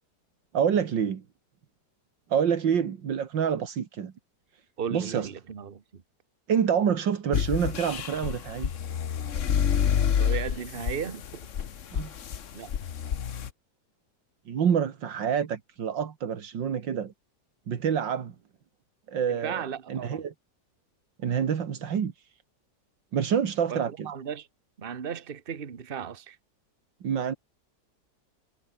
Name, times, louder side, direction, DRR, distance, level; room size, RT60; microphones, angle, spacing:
voice 1, 0.5-1.2 2.3-4.1 4.9-5.3 6.5-8.7 11.9-12.1 14.5-17.1 17.7-18.3 19.1-19.6 19.9-20.3 21.2-22.1 23.1-24.1 27.0-27.3, right 8 dB, 80° right, 2.4 m, -27 dB
voice 2, 4.8-6.0 10.2-11.4 12.5-12.7 19.3-20.2 23.7-24.5 24.8-26.4, right 7 dB, 35° right, 1.3 m, -36 dB
sound 1, 7.3-13.5, left 8 dB, 50° left, 1.2 m, -28 dB
omnidirectional pair, 2.0 m